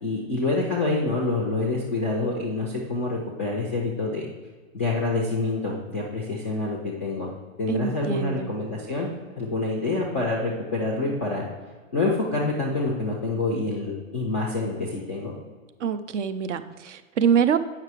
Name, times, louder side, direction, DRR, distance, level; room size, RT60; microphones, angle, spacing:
voice 1, 0.0-4.3 4.7-7.3 7.6-9.1 9.4-11.4 11.9-15.3, left 2 dB, 10° left, -2 dB, 0.3 m, -27 dB
voice 2, 7.7-8.5 15.8-17.6, right 7 dB, 55° right, 11 dB, 0.7 m, -25 dB
8.5 x 5.9 x 4.6 m, 1.4 s
hypercardioid pair, 160°, 42 cm